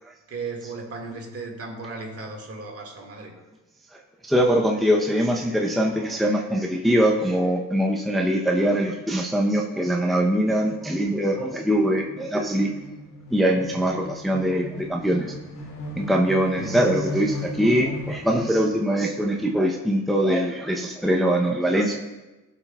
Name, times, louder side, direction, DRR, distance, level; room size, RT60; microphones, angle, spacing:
voice 1, 0.3-3.3 13.8-13.9 16.6-16.8, right 3 dB, 50° right, 1 dB, 1.9 m, -36 dB
voice 2, 4.2-12.7 13.3-15.3 16.0-22.0, equal, ahead, 0 dB, 0.7 m, -22 dB
sound 1, 10.8-18.8, left 1 dB, 90° left, 2.0 m, -37 dB
16.5 x 5.8 x 2.3 m, 1.1 s
cardioid pair, 90°, 30 cm